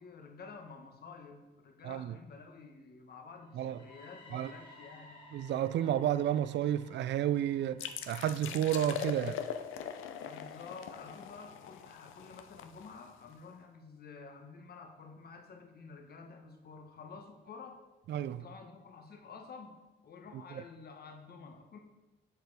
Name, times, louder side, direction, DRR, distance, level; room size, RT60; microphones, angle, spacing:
voice 1, 0.0-5.2 10.2-17.8 18.3-21.8, left 4 dB, 50° left, 1.2 m, -50 dB
voice 2, 1.8-2.2 3.6-3.8 4.3-4.5 5.3-9.4 18.1-18.4, right 11 dB, 65° right, 0.4 m, -31 dB
sound 1, 3.4-11.3, left 2 dB, 25° left, 1.8 m, -59 dB
sound 2, 7.8-13.3, left 8 dB, 85° left, 0.6 m, -42 dB
6.7 x 6.7 x 4.8 m
cardioid pair, 90°, 20 cm